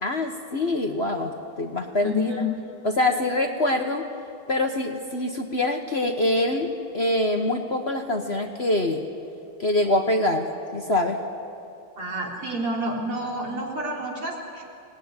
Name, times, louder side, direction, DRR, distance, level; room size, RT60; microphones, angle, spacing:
voice 1, 0.0-2.4 2.8-4.0 4.5-9.1 9.6-11.2, left 1 dB, 35° left, 4 dB, 1.1 m, -25 dB
voice 2, 2.0-2.5 12.0-14.6, left 1 dB, 90° right, -1 dB, 4.7 m, -29 dB
23.5 x 19.0 x 9.6 m, 2.6 s
omnidirectional pair, 2.3 m